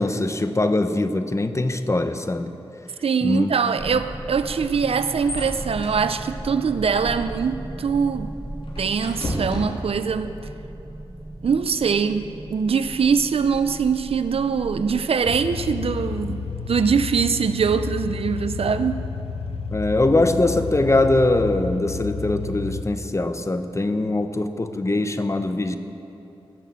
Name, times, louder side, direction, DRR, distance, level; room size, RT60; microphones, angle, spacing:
voice 1, 0.0-2.5 3.2-3.5 3.9-4.0 19.7-25.8, left 2 dB, 30° left, 9 dB, 0.9 m, -22 dB
voice 2, 3.0-8.3 8.8-10.4 11.4-19.1, right 6 dB, 75° right, 11 dB, 0.5 m, -23 dB
sound 1, 3.8-17.1, right 1 dB, 30° right, 1.3 m, -37 dB
sound 2, 4.6-10.3, left 1 dB, 65° left, 2.9 m, -35 dB
sound 3, 15.2-22.8, left 5 dB, 90° left, 0.7 m, -31 dB
17.0 x 6.7 x 7.6 m, 2.9 s
cardioid pair, 55°, 10 cm